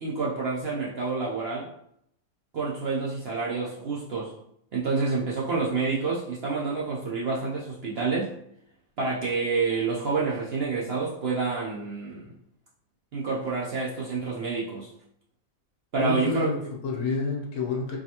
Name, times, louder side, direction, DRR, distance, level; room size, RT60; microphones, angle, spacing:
voice 1, 0.0-1.7 2.5-4.3 4.7-8.3 9.0-12.3 13.1-14.9 15.9-16.5, right 4 dB, 60° right, -5 dB, 0.7 m, -28 dB
voice 2, 16.0-18.0, left 3 dB, 75° left, -1 dB, 1.4 m, -29 dB
4.7 x 2.4 x 2.8 m, 0.74 s
omnidirectional pair, 1.6 m